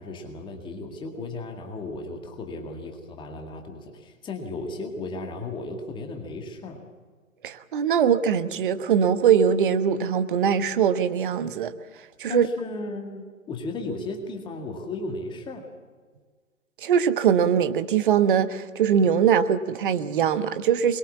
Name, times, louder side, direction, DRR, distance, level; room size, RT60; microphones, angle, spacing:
voice 1, 0.0-6.8 12.3-15.7, left 3 dB, 10° left, 3 dB, 2.0 m, -35 dB
voice 2, 7.4-11.7 12.2-12.5 16.8-21.0, right 8 dB, 40° right, 12 dB, 1.2 m, -22 dB
23.0 x 22.0 x 7.3 m, 1.5 s
figure-of-eight pair, 125°, 40 cm